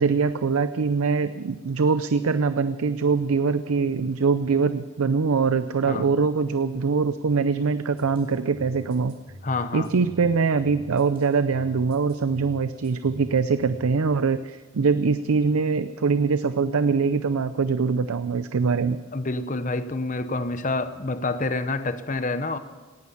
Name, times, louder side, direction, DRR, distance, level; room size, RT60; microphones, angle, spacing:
voice 1, 0.0-9.1 9.7-19.0, right 5 dB, 85° right, 12 dB, 0.5 m, -23 dB
sound 1, 8.0-14.0, equal, 40° right, 2.7 m, -46 dB
voice 2, 9.4-9.9 19.1-22.6, left 3 dB, 35° left, 11 dB, 0.9 m, -27 dB
18.0 x 11.0 x 7.2 m, 1.3 s
head